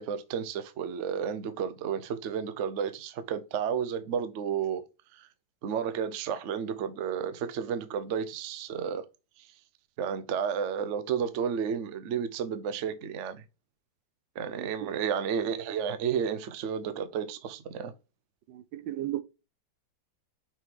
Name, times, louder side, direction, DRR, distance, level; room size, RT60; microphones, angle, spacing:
voice 1, 0.0-4.8 5.1-5.3 5.6-9.0 9.4-9.5 10.0-13.4 14.4-17.9, right 7 dB, 60° right, 0.8 m, -32 dB
voice 2, 14.6-14.9 18.5-19.2, right 13 dB, 80° right, 1.3 m, -35 dB
5.9 x 3.7 x 4.7 m
omnidirectional pair, 2.1 m